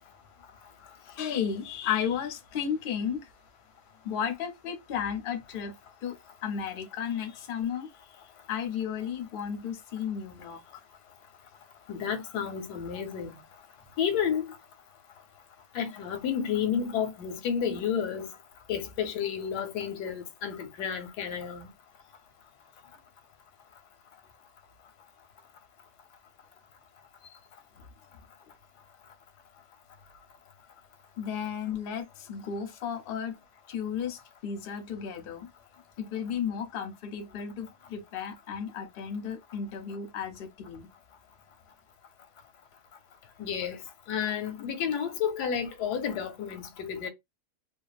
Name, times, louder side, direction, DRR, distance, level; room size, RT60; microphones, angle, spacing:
voice 1, 1.1-3.3 4.0-5.7 6.0-6.1 6.4-7.9 8.5-10.6 31.2-33.3 33.7-35.5 36.0-40.9, left 8 dB, 60° left, 0.5 m, -33 dB
voice 2, 11.9-13.3 14.0-14.5 15.7-18.3 18.7-21.7 43.4-43.8 44.1-47.1, left 8 dB, 85° left, 1.2 m, -31 dB
2.7 x 2.2 x 2.4 m
omnidirectional pair, 1.7 m